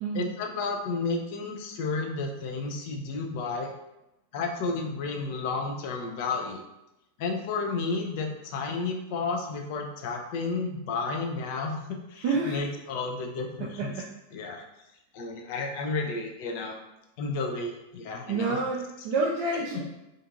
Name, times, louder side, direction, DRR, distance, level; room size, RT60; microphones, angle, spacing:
voice 1, 0.1-3.7 4.3-6.6 7.2-13.9 14.3-14.6 15.1-16.8 17.2-18.6, left 3 dB, 45° left, 2 dB, 0.4 m, -32 dB
voice 2, 12.2-12.6 13.6-14.1 18.3-19.8, right 3 dB, 40° right, -2 dB, 0.3 m, -28 dB
2.6 x 2.5 x 2.4 m, 0.91 s
figure-of-eight pair, 90°, 0 cm